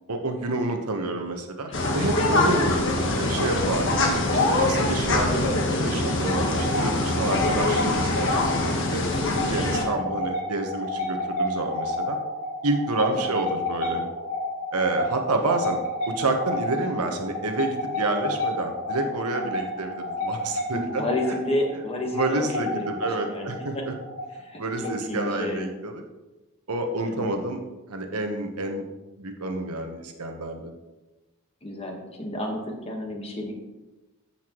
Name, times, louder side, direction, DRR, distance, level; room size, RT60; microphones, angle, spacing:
voice 1, 0.1-4.0 4.5-8.3 8.9-12.2 12.6-14.0 14.7-15.8 16.1-21.0 21.3-21.4 22.1-23.9 24.6-26.0 26.7-27.6 27.9-28.8 29.2-30.7, right 2 dB, 90° right, 4 dB, 1.1 m, -29 dB
sound 1, 1.7-9.9, left 2 dB, 60° left, 1.4 m, -24 dB
sound 2, 6.2-25.6, left 1 dB, 75° left, 3.0 m, -31 dB
voice 2, 20.7-23.5 23.7-23.9 24.4-25.7 27.0-27.3 31.6-33.5, left 1 dB, 25° left, 1 dB, 1.4 m, -31 dB
14.0 x 5.7 x 3.1 m, 1.1 s
head